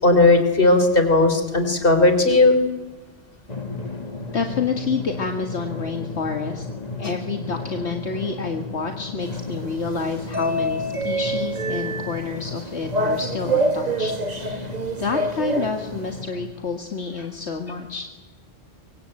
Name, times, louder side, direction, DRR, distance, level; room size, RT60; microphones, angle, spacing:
voice 1, 0.0-2.6, left 2 dB, 50° left, 7 dB, 3.8 m, -16 dB
Drum, 3.5-16.5, left 3 dB, 35° left, 2.0 m, -34 dB
voice 2, 4.3-6.7 7.0-18.1, left 4 dB, 70° left, 5 dB, 2.2 m, -29 dB
sound 1, 9.2-16.2, right 2 dB, 35° right, 1.5 m, -27 dB
25.0 x 24.0 x 8.9 m, 1.2 s
omnidirectional pair, 1.2 m